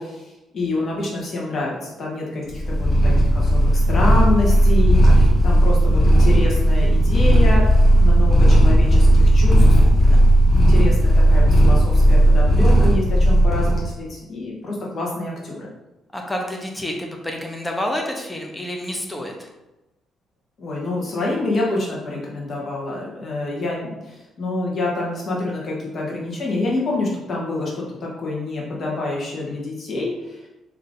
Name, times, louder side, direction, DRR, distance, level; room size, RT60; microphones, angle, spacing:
voice 1, 0.0-7.6 8.0-9.8 10.5-15.7 20.6-30.4, left 2 dB, 50° left, -3 dB, 1.5 m, -27 dB
Purr, 2.5-13.8, equal, 30° left, 1.4 m, -14 dB
voice 2, 9.6-10.2 10.5-10.8 16.1-19.5, left 1 dB, 15° left, 1 dB, 0.7 m, -30 dB
3.8 x 3.2 x 3.8 m, 1.0 s
cardioid pair, 90°, 0 cm